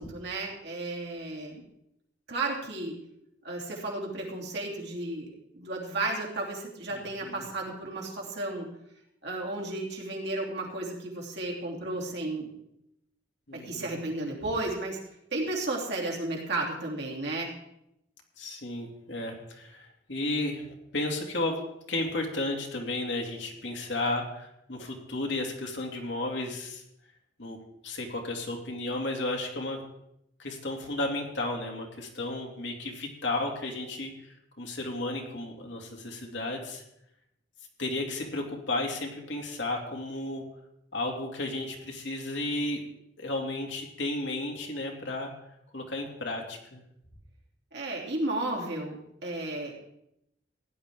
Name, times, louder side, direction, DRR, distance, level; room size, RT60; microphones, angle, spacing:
voice 1, 0.0-1.6 2.3-2.9 3.4-5.3 5.5-8.7 9.2-12.5 13.5-15.0 15.3-17.5 47.7-49.7, right 2 dB, 65° right, -2 dB, 3.0 m, -33 dB
voice 2, 6.9-7.4 13.5-13.9 18.4-20.6 20.9-21.6 21.9-26.8 27.4-27.6 27.8-29.8 30.4-36.8 37.8-40.4 40.9-42.8 43.2-45.3 45.7-46.8, left 2 dB, 65° left, 1 dB, 2.4 m, -33 dB
16.5 x 10.5 x 3.7 m, 0.80 s
head